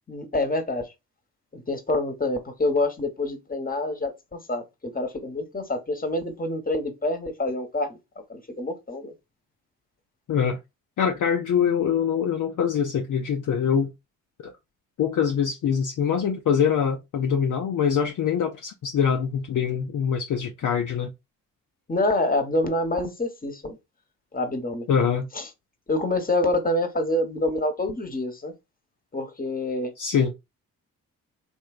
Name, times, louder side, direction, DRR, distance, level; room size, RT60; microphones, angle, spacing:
voice 1, 0.1-0.8 1.5-4.6 4.9-8.0 8.3-9.1 21.9-23.8 24.3-24.8 25.3-25.5 25.9-28.5 29.1-29.9, left 2 dB, 20° left, 1.2 m, -26 dB
voice 2, 10.3-10.6 11.0-13.9 15.0-21.1 24.9-25.3 30.0-30.3, left 7 dB, 50° left, 0.6 m, -24 dB
3.3 x 2.7 x 2.4 m
hypercardioid pair, 40°, 39 cm